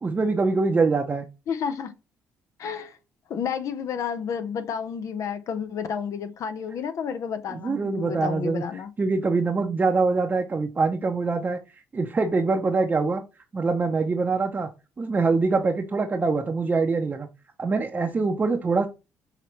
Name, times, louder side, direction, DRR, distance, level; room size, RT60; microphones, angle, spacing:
voice 1, 0.0-1.3 7.5-8.6 9.0-11.6 11.9-13.2 13.5-14.7 15.0-17.3 17.6-18.9, right 4 dB, 30° right, 0.7 m, -24 dB
voice 2, 1.5-1.9 2.6-3.0 3.3-8.9, left 7 dB, 60° left, 0.7 m, -31 dB
5.9 x 2.9 x 3.1 m
supercardioid pair, 75°, 6 cm